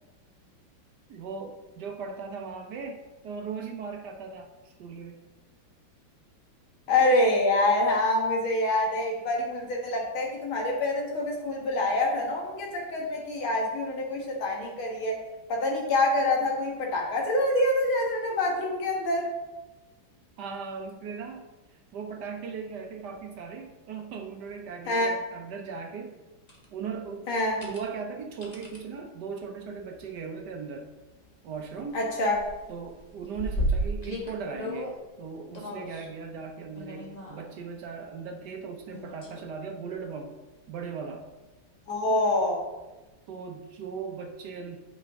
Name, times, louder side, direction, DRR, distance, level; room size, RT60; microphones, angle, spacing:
voice 1, 1.1-5.2 20.4-21.5 21.9-26.2 26.7-27.3 27.6-30.9 31.4-32.0 32.7-40.4 40.7-41.3 43.3-44.8, right 5 dB, 65° right, 4 dB, 1.3 m, -38 dB
voice 2, 6.9-15.2 15.5-19.3 24.9-25.1 27.3-27.6 31.9-32.4 41.9-42.6, left 2 dB, 90° left, 0 dB, 2.4 m, -26 dB
sound 1, 26.5-26.6 27.4-27.8 28.4-28.8 30.0-30.2 30.7-30.8 31.0-32.0 32.3-35.0 35.5-36.1 36.7-37.6 38.9-39.4 39.9-40.0 42.4-42.5, right 1 dB, 25° left, 1.1 m, -34 dB
8.5 x 5.7 x 3.6 m, 1.1 s
omnidirectional pair, 2.2 m